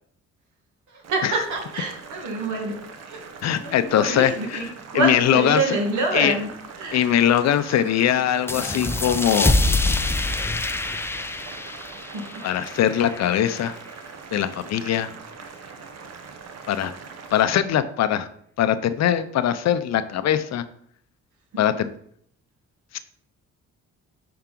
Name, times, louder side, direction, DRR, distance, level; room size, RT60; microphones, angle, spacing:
voice 1, 0.9-3.3 3.6-6.5 6.8-7.2 12.1-12.2, right 3 dB, 75° right, 2 dB, 1.5 m, -27 dB
Boiling, 1.0-17.4, right 5 dB, 55° right, 0.8 m, -42 dB
voice 2, 3.4-4.3 4.9-5.8 6.1-6.3 6.9-9.5 12.4-13.7 14.3-15.1 16.7-16.9 17.3-18.3 18.6-20.6 21.6-21.9 22.9-23.0, left 10 dB, 60° left, 12 dB, 0.6 m, -21 dB
sound 1, 8.5-13.7, left 2 dB, 10° left, 0.3 m, -25 dB
5.7 x 4.7 x 3.8 m, 0.65 s
cardioid pair, 90°, 30 cm